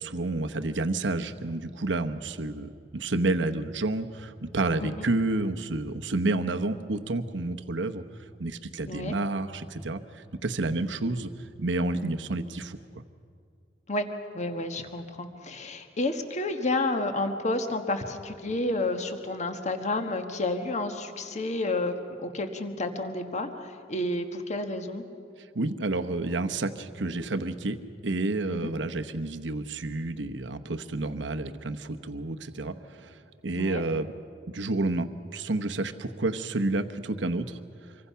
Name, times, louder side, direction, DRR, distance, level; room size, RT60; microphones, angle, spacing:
voice 1, 0.0-8.0 8.4-11.3 11.6-12.8 25.4-34.1 34.5-37.6, right 2 dB, 75° right, 7 dB, 1.0 m, -30 dB
voice 2, 8.9-9.2 13.9-14.1 14.3-21.9 22.2-25.0 28.5-28.7 33.5-33.8, left 2 dB, 40° left, 6 dB, 1.5 m, -30 dB
26.0 x 23.5 x 5.7 m, 2.3 s
head